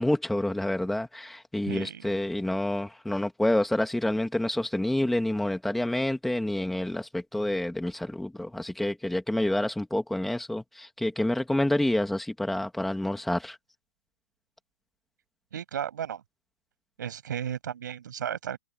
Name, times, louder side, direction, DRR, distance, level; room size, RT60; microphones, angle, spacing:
voice 1, 0.0-13.6, left 1 dB, ahead, 1.6 m, -28 dB
voice 2, 1.7-2.0 15.5-16.2 17.0-18.6, right 9 dB, 65° right, 8.0 m, -34 dB
hypercardioid pair, 180°, 11 cm